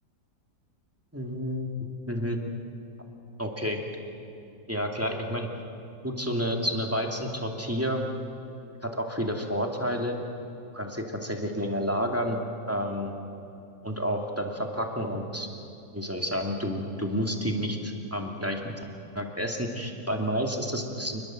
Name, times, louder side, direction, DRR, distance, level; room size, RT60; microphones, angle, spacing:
voice 1, 1.1-1.7 2.1-2.4 3.4-3.8 4.7-5.5 6.0-8.0 8.8-10.2 10.7-12.4 12.7-13.1 13.8-15.5 15.9-18.6 19.1-21.2, equal, 10° right, 2 dB, 2.5 m, -30 dB
28.0 x 21.5 x 7.7 m, 2.6 s
omnidirectional pair, 1.8 m